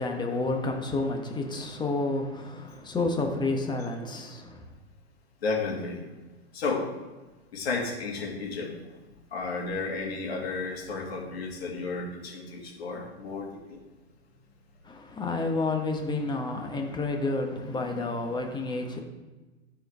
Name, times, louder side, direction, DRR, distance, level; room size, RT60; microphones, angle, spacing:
voice 1, 0.0-4.6 14.9-19.0, left 3 dB, 15° left, 1.2 m, -30 dB
voice 2, 5.4-6.0 6.5-6.9 7.5-8.7 9.3-13.5 16.8-16.9 17.7-18.0, left 4 dB, 65° left, 2.4 m, -32 dB
13.0 x 4.7 x 3.5 m
hypercardioid pair, 105°, 33 cm